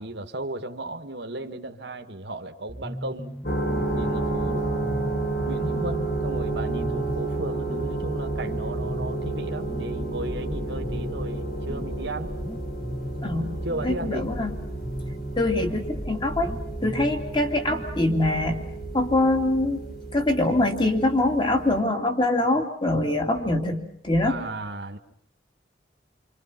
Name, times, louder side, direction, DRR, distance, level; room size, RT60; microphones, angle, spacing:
voice 1, 0.0-3.4 3.9-4.7 5.4-12.4 13.6-14.3 24.2-25.0, right 2 dB, 65° right, 4 dB, 1.7 m, -35 dB
sound 1, 2.7-18.7, equal, 5° left, 1.1 m, -38 dB
sound 2, 3.4-21.8, right 2 dB, 50° left, 3.3 m, -31 dB
voice 2, 13.2-13.6 13.8-14.5 15.4-16.5 16.8-18.6 18.9-19.8 20.1-24.4, left 1 dB, 25° left, 4 dB, 2.6 m, -24 dB
28.5 x 25.5 x 5.9 m, 0.67 s
head